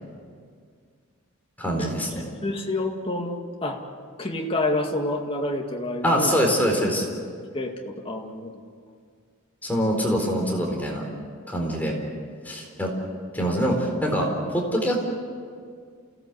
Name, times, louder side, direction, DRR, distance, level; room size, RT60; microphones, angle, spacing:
voice 1, 1.6-2.2 6.0-7.0 9.6-11.0 11.5-12.0 12.4-12.9 13.3-15.0, equal, 10° left, -1 dB, 4.2 m, -24 dB
voice 2, 2.4-3.8 4.2-6.4 7.5-8.5, left 2 dB, 25° left, 2 dB, 2.2 m, -28 dB
28.5 x 17.5 x 8.2 m, 2.1 s
head